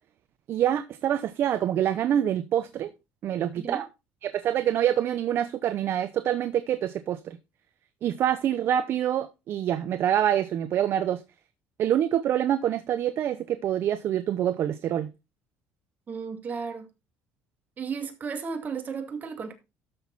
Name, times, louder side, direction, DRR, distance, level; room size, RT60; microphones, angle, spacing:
voice 1, 0.5-2.9 3.2-3.9 4.2-7.4 8.0-11.2 11.8-15.1, right 10 dB, 55° right, 0.8 m, -26 dB
voice 2, 16.1-16.9 17.8-19.5, right 5 dB, 35° right, 2.4 m, -34 dB
13.0 x 6.3 x 4.1 m
cardioid pair, 115°, 5 cm